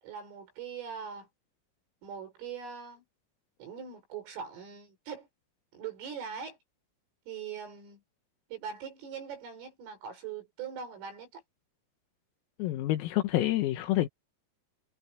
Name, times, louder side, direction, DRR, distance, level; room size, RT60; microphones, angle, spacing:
voice 1, 0.0-1.3 2.0-3.0 3.6-5.3 5.7-6.6 7.3-8.0 8.5-11.4, right 7 dB, 70° right, 8.4 m, -41 dB
voice 2, 12.6-14.1, left 15 dB, 85° left, 4.3 m, -28 dB
omnidirectional pair, 6.0 m